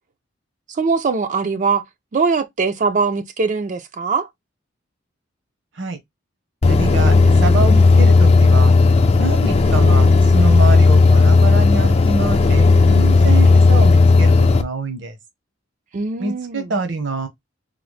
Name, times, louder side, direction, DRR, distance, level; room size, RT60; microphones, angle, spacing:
voice 1, 0.7-1.8 2.1-4.3 15.9-16.7, right 4 dB, 40° right, 0.4 m, -21 dB
sound 1, 6.6-14.6, left 3 dB, 30° left, 0.4 m, -13 dB
voice 2, 6.7-8.8 9.2-15.2 16.2-17.3, right 3 dB, 65° right, 0.8 m, -25 dB
3.8 x 2.0 x 3.1 m
head